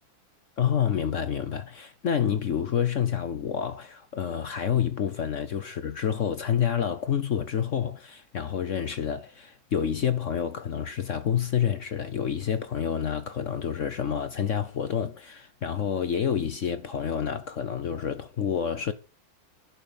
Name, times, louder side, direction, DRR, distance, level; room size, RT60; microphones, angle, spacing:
voice 1, 0.6-18.9, left 8 dB, 60° left, 0.8 m, -28 dB
11.5 x 6.0 x 7.1 m
omnidirectional pair, 2.2 m